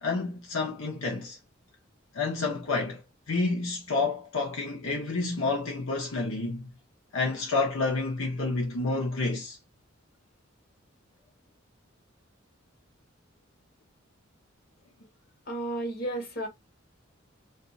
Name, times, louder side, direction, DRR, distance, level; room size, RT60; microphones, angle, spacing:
voice 1, 0.0-1.4 2.1-3.0 3.3-6.7 7.1-9.6, left 3 dB, 75° left, 0.9 m, -29 dB
voice 2, 15.5-16.5, right 1 dB, 50° left, 1.4 m, -32 dB
4.0 x 2.6 x 2.4 m
head